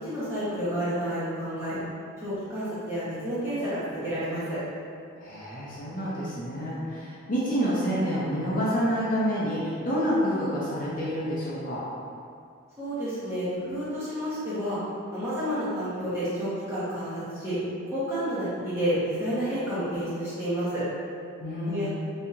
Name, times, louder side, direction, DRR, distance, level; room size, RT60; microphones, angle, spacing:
voice 1, 0.0-1.8 2.2-4.6 12.8-14.8 15.1-17.6 17.9-20.8 21.6-22.0, equal, 15° right, -13 dB, 1.2 m, -30 dB
voice 2, 5.2-11.8 21.4-22.0, equal, 40° left, -8 dB, 0.6 m, -28 dB
4.1 x 2.8 x 2.6 m, 2.4 s
head